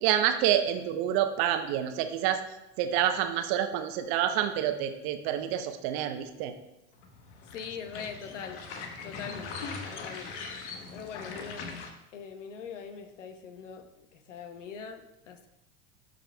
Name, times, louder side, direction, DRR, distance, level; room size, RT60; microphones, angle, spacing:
voice 1, 0.0-2.4 2.8-6.5, right 10 dB, 60° right, 8 dB, 0.9 m, -28 dB
sound 1, 7.0-11.9, left 4 dB, 70° left, 1.2 m, -41 dB
voice 2, 7.5-8.6 9.0-9.6 9.9-10.4 10.9-11.7 12.1-13.9 14.1-15.5, left 6 dB, 90° left, 7 dB, 0.9 m, -42 dB
13.0 x 5.1 x 2.3 m, 0.91 s
hypercardioid pair, 95°, 36 cm